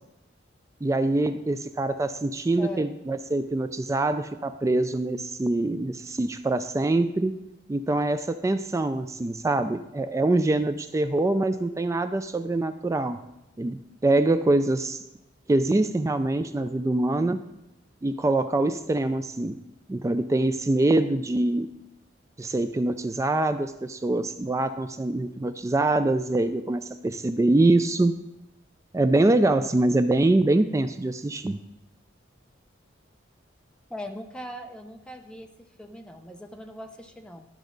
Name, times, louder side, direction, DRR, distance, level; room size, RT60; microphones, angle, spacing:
voice 1, 0.8-7.4 7.7-13.2 13.6-15.0 15.5-17.4 18.0-19.6 19.9-21.7 22.4-28.1 28.9-31.6, right 2 dB, 15° right, 10 dB, 0.3 m, -24 dB
voice 2, 2.6-2.9 33.9-35.5 35.8-37.5, left 1 dB, 5° left, 4 dB, 0.7 m, -39 dB
12.0 x 6.1 x 3.9 m, 0.91 s
head